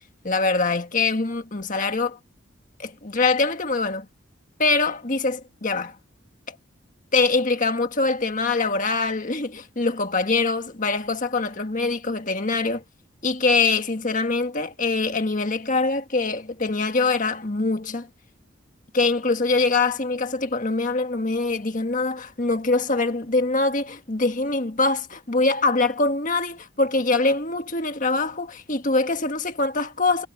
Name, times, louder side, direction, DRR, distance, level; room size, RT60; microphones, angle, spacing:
voice 1, 0.2-2.2 2.8-4.1 4.6-5.9 6.5-6.6 7.1-12.8 13.2-18.1 18.9-30.3, left 3 dB, 40° left, 1.7 m, -23 dB
head